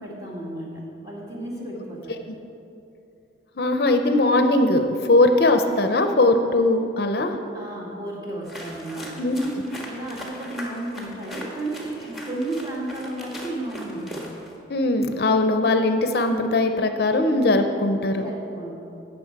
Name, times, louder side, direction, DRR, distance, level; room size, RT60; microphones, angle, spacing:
voice 1, 0.0-2.1 7.5-9.2 9.8-14.3 18.2-18.8, right 1 dB, 20° right, -4 dB, 1.9 m, -33 dB
voice 2, 3.6-7.4 9.2-9.5 14.7-18.3, left 2 dB, 55° left, 6 dB, 0.6 m, -20 dB
sound 1, 8.4-14.6, equal, ahead, 1.4 m, -39 dB
16.0 x 6.2 x 4.7 m, 2.7 s
head